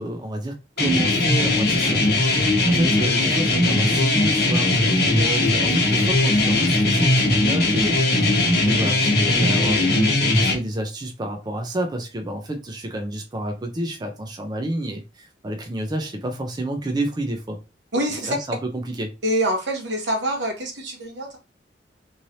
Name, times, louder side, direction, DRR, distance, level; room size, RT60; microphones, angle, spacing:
voice 1, 0.0-17.6 18.3-19.1, right 1 dB, 25° right, 0.4 m, -29 dB
sound 1, 0.8-10.5, left 2 dB, 60° left, 1.0 m, -19 dB
voice 2, 17.9-18.4 19.2-21.4, right 1 dB, 85° right, 1.1 m, -25 dB
3.1 x 2.7 x 2.7 m
head